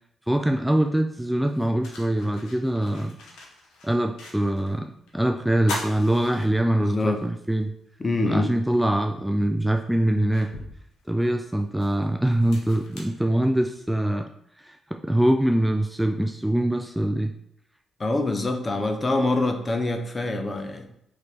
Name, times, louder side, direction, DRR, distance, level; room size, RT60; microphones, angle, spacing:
voice 1, 0.3-3.2 3.8-7.7 8.2-10.5 11.1-14.3 14.6-17.3, right 1 dB, 5° right, 5 dB, 0.3 m, -23 dB
sound 1, 0.8-0.9 1.4-4.8 5.1-5.2 5.6-7.1 7.5-7.6 9.0-9.1 9.7-13.9, left 2 dB, 80° left, 1.0 m, -40 dB
voice 2, 6.8-7.2 8.0-8.5 18.0-20.9, left 2 dB, 30° left, 6 dB, 0.6 m, -25 dB
3.3 x 3.0 x 4.2 m, 0.73 s
supercardioid pair, 60°, 0 cm